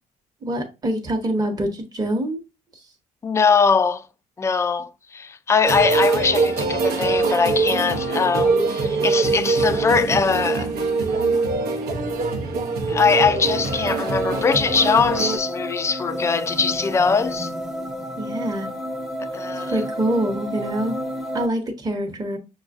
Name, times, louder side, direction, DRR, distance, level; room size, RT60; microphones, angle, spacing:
voice 1, 0.4-2.4 18.2-18.7 19.6-21.0 21.3-22.4, right 1 dB, 20° right, 1.0 m, -25 dB
voice 2, 3.2-4.1 4.4-10.7 12.9-17.5 19.3-19.8, left 5 dB, 15° left, 0.3 m, -21 dB
sound 1, 5.6-15.4, right 4 dB, 70° right, 0.8 m, -23 dB
sound 2, 13.5-21.5, equal, ahead, 0.7 m, -31 dB
6.2 x 2.4 x 2.4 m
cardioid pair, 110°, 17 cm